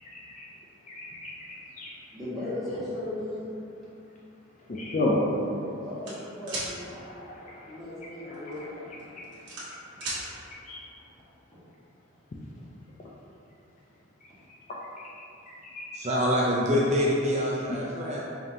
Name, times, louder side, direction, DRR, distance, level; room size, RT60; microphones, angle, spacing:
voice 1, 0.1-0.4 0.9-1.9 4.7-5.2 7.3-7.6 8.3-8.4 10.7-10.8 15.7-16.0, left 2 dB, 40° left, -4 dB, 0.4 m, -32 dB
voice 2, 2.1-3.5 5.8-6.9 7.6-8.7, left 1 dB, ahead, -13 dB, 1.3 m, -36 dB
sound 1, 6.0-6.7 8.3-8.6 9.0-10.2, right 2 dB, 60° right, 1.1 m, -35 dB
voice 3, 15.9-18.3, equal, 35° right, -5 dB, 0.4 m, -25 dB
4.9 x 2.7 x 2.7 m, 2.7 s
head